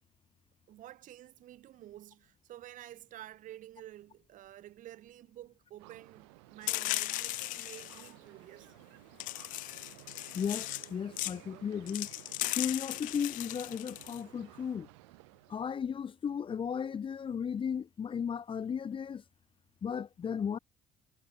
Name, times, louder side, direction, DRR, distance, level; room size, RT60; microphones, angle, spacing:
voice 1, 0.7-8.7, right 13 dB, 65° right, 2.9 m, -50 dB
sound 1, 5.8-15.9, right 27 dB, 90° right, 5.5 m, -55 dB
sound 2, 6.7-8.1 9.2-10.9 11.2-11.4 11.9-14.2, left 19 dB, 70° left, 0.4 m, -37 dB
voice 2, 10.3-12.1 12.5-14.9 15.5-19.2 19.8-20.6, left 7 dB, 35° left, 0.7 m, -35 dB
supercardioid pair, 70°, 14 cm